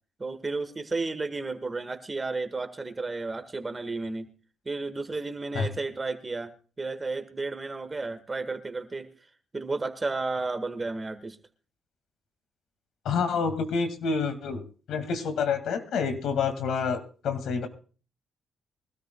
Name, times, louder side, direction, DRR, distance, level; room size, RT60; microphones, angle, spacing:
voice 1, 0.2-4.3 4.6-6.5 6.8-9.1 9.5-11.4, right 3 dB, 25° right, 9 dB, 1.6 m, -32 dB
voice 2, 13.0-17.7, left 5 dB, 75° left, 8 dB, 2.1 m, -28 dB
23.0 x 13.0 x 2.3 m, 0.38 s
cardioid pair, 90°, 0 cm